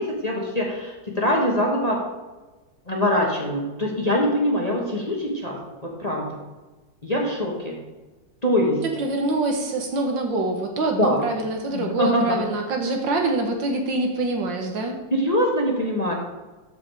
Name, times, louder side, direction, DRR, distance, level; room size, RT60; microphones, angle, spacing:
voice 1, 0.0-2.0 2.9-6.4 7.0-7.8 8.4-8.8 11.0-11.2 11.7-12.4 15.1-16.1, equal, 25° left, -1 dB, 1.2 m, -23 dB
voice 2, 9.0-15.0, right 2 dB, 75° right, 3 dB, 1.9 m, -25 dB
13.0 x 5.0 x 4.8 m, 1.2 s
omnidirectional pair, 2.0 m